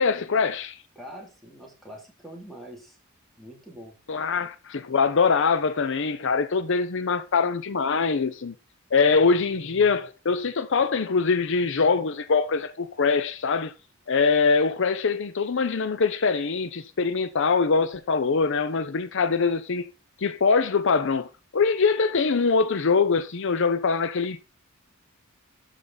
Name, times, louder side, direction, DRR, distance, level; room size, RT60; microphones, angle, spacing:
voice 1, 0.0-0.8 4.1-8.5 8.9-13.7 14.1-19.9 20.2-24.4, left 5 dB, 60° left, 0.6 m, -23 dB
voice 2, 1.0-3.0 3.4-4.0, equal, ahead, 2.7 m, -44 dB
12.5 x 5.1 x 4.0 m
head